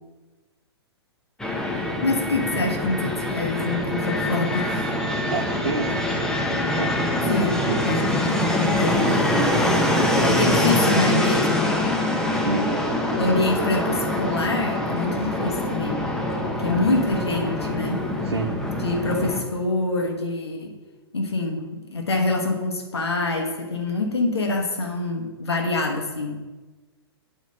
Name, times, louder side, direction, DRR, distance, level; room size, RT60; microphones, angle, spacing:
Fixed-wing aircraft airplane, 1.4-19.4, left 1 dB, 5° left, 1.1 m, -24 dB
voice 1, 2.0-4.9 7.3-8.0 8.3-8.5 8.8-9.1 10.3-11.8 13.2-16.0 16.6-18.0 18.8-20.7 21.1-26.4, left 2 dB, 70° left, 1 dB, 1.4 m, -25 dB
voice 2, 5.3-5.9 6.7-7.8 12.4-12.8 17.4-17.5 18.2-18.5, right 4 dB, 70° right, 2 dB, 0.8 m, -29 dB
9.2 x 3.7 x 6.8 m, 1.2 s
figure-of-eight pair, 110°, 14 cm